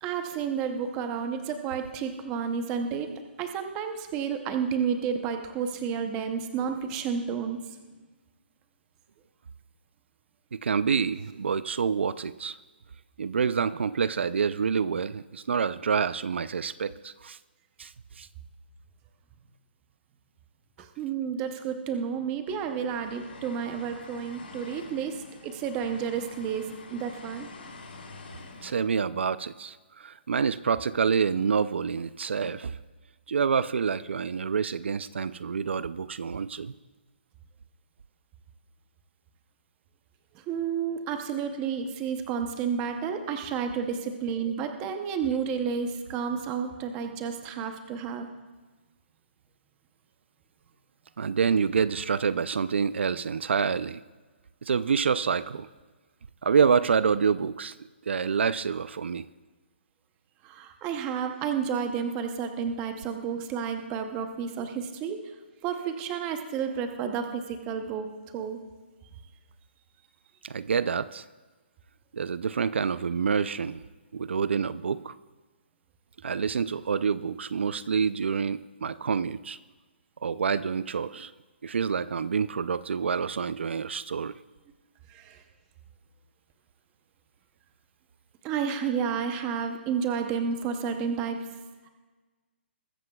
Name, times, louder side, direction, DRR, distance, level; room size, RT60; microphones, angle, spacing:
voice 1, 0.0-3.1 3.4-7.6 20.8-27.5 40.3-48.3 60.4-65.2 65.6-68.1 68.3-68.6 85.1-85.4 88.4-91.4, right 7 dB, 15° right, 6 dB, 0.7 m, -31 dB
voice 2, 10.5-12.6 13.2-17.4 17.8-18.3 28.6-32.8 33.3-36.7 51.2-54.0 54.6-55.7 56.4-57.8 58.1-59.3 70.4-71.2 72.1-73.8 74.1-75.2 76.2-79.6 80.2-81.3 81.6-84.3, right 6 dB, 75° right, 16 dB, 0.5 m, -27 dB
sound 1, 22.5-28.8, left 3 dB, 65° left, 4.3 m, -47 dB
21.5 x 14.0 x 2.3 m, 1.3 s
hypercardioid pair, 170°, 6 cm